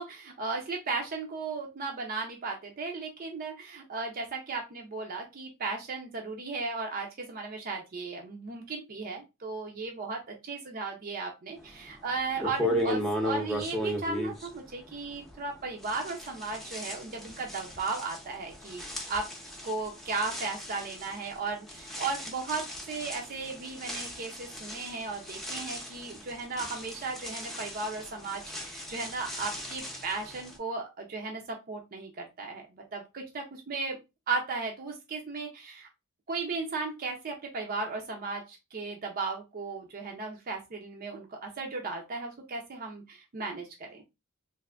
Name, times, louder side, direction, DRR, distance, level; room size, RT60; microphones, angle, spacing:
voice 1, 0.0-18.8 19.1-19.3 19.6-34.0 34.3-35.9 36.3-44.0, right 3 dB, 45° right, 1 dB, 0.5 m, -36 dB
sound 1, 11.8-11.9 12.4-15.5 15.8-30.6, equal, ahead, 0.6 m, -36 dB
3.3 x 2.6 x 2.4 m, 0.25 s
head